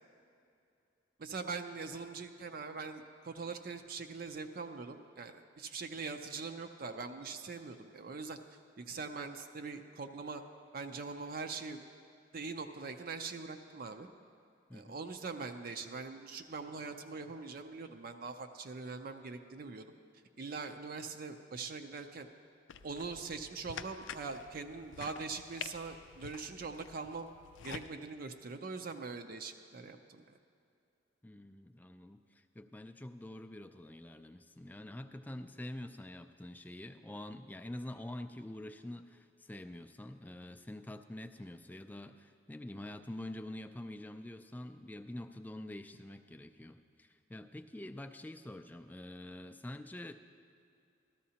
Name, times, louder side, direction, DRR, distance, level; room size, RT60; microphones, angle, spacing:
voice 1, 1.2-8.4 8.8-10.4 10.7-11.8 12.3-14.1 14.7-19.9 20.4-22.3 22.8-27.3 27.6-30.4, right 4 dB, 50° right, 7 dB, 0.5 m, -42 dB
sound 1, 22.7-27.9, left 7 dB, 85° left, 0.4 m, -48 dB
voice 2, 31.2-50.1, left 1 dB, 10° left, 7 dB, 0.3 m, -46 dB
13.5 x 13.0 x 2.8 m, 2.5 s
head